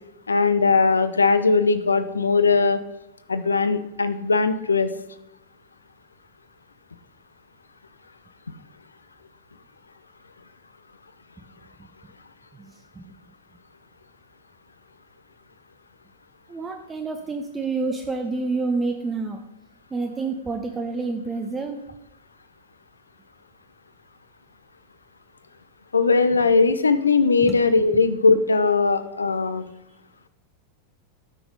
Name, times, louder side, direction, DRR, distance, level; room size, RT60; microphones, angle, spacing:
voice 1, 0.3-2.8 3.3-4.9 25.9-29.6, left 4 dB, 75° left, 12 dB, 0.6 m, -19 dB
voice 2, 16.5-19.4 19.9-21.8 27.4-27.6, right 3 dB, 15° right, 4 dB, 0.7 m, -28 dB
12.5 x 6.0 x 3.9 m, 0.88 s
figure-of-eight pair, 90°, 0 cm